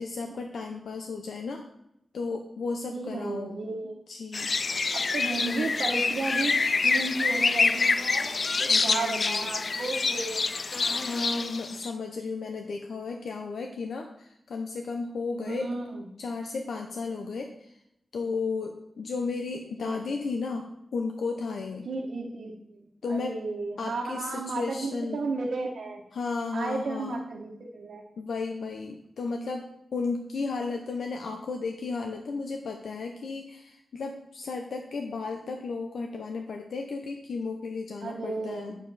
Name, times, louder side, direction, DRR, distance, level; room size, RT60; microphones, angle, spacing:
voice 1, 0.0-1.6 2.1-4.5 5.4-5.7 8.7-9.5 10.9-15.7 16.2-17.7 18.1-20.7 20.9-21.9 23.0-23.4 23.8-25.2 26.1-27.2 28.2-38.7, left 4 dB, 90° left, 3 dB, 0.8 m, -34 dB
voice 2, 2.9-4.0 4.7-10.4 15.4-16.1 19.8-20.1 21.8-26.0 26.5-28.0 38.0-38.8, right 3 dB, 85° right, -3 dB, 1.1 m, -34 dB
sound 1, 4.3-11.9, left 4 dB, 45° left, 0.4 m, -26 dB
9.0 x 7.2 x 4.1 m, 0.79 s
wide cardioid pair, 140°, 0 cm